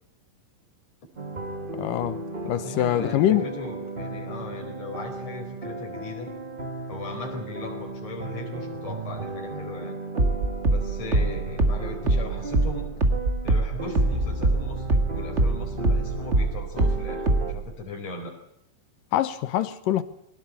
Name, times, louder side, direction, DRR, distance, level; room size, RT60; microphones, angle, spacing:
sound 1, 1.2-17.5, right 2 dB, 75° right, 0.4 m, -35 dB
voice 1, 1.7-2.2 2.4-3.5 19.1-20.0, left 12 dB, 85° left, 2.7 m, -24 dB
voice 2, 2.6-6.3 6.9-10.0 10.7-12.9 13.4-18.3, left 3 dB, 50° left, 5.4 m, -38 dB
sound 2, 10.2-15.1 15.4-17.6, right 2 dB, 25° right, 1.9 m, -22 dB
23.0 x 18.0 x 8.7 m
omnidirectional pair, 3.8 m